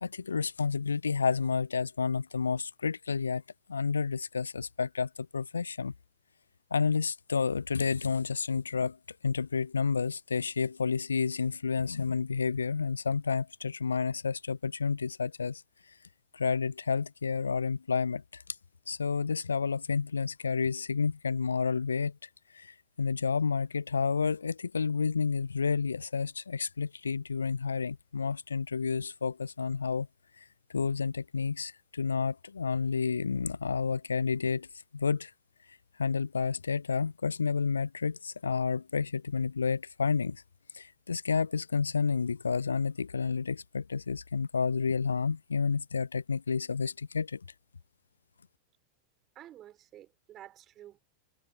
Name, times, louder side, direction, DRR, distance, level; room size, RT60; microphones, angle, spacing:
voice 1, 0.0-3.4 3.7-5.9 6.7-9.0 9.2-15.6 16.3-18.4 18.9-30.1 30.4-30.5 30.7-34.7 34.9-35.3 36.0-40.4 40.7-47.4, left 5 dB, 75° left, 0.5 m, -30 dB
voice 2, 49.3-51.0, right 12 dB, 30° right, 6.1 m, -51 dB
figure-of-eight pair, 90°, 0 cm